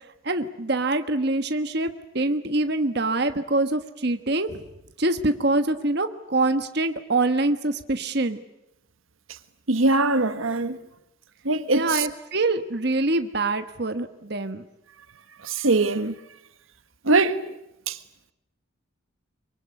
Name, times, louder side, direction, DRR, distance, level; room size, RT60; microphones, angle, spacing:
voice 1, 0.2-4.6 5.0-8.4 11.7-14.6, right 2 dB, 50° right, 1.4 m, -25 dB
voice 2, 9.7-10.8 11.4-12.1 15.4-16.1 17.0-17.5 17.9-18.0, right 3 dB, 80° right, 1.5 m, -22 dB
24.5 x 24.0 x 9.7 m
head